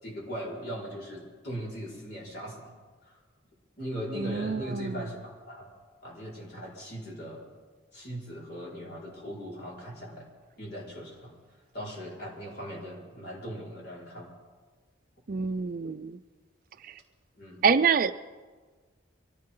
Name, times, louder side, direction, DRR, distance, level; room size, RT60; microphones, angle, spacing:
voice 1, 0.0-2.7 3.0-3.2 3.8-5.7 6.0-7.4 7.9-10.3 10.6-11.4 11.7-14.3 17.3-17.6, equal, 55° left, -4 dB, 4.8 m, -39 dB
voice 2, 4.1-5.0 15.3-16.2 16.8-16.9 17.6-18.1, right 6 dB, 45° right, 12 dB, 0.4 m, -26 dB
23.5 x 16.0 x 3.8 m, 1.4 s
head